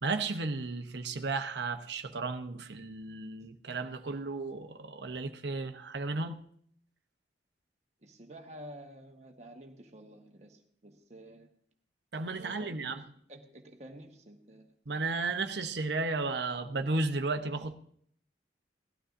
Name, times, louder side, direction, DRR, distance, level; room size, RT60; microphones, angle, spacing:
voice 1, 0.0-6.4 12.1-13.0 14.9-17.7, right 3 dB, 75° right, 0.9 m, -34 dB
voice 2, 8.0-11.5 12.3-14.7, right 1 dB, 40° right, 1.2 m, -50 dB
18.0 x 12.5 x 2.6 m
head